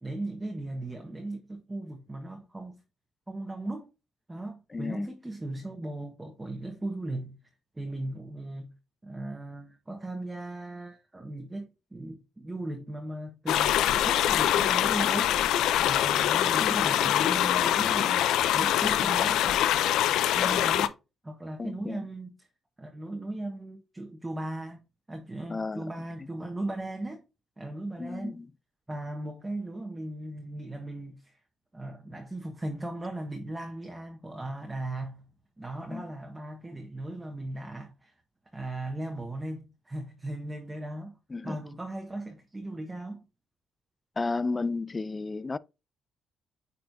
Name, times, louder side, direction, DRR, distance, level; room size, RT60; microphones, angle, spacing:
voice 1, 0.0-2.8 3.3-3.9 4.3-7.4 7.7-8.7 9.0-15.4 15.8-18.2 18.5-19.6 20.3-20.9 21.2-22.5 22.8-24.8 25.1-27.2 27.6-28.3 28.9-31.4 31.7-35.3 35.6-38.1 38.5-41.2 41.4-43.2, right 1 dB, 15° right, 1.2 m, -37 dB
voice 2, 4.7-5.1 16.6-16.9 21.6-22.0 25.5-25.9 28.0-28.5 35.9-36.1 41.3-41.6 44.2-45.6, left 3 dB, 25° left, 0.4 m, -33 dB
sound 1, 13.5-20.9, left 11 dB, 85° left, 0.5 m, -24 dB
8.9 x 4.2 x 2.7 m
cardioid pair, 90°, 0 cm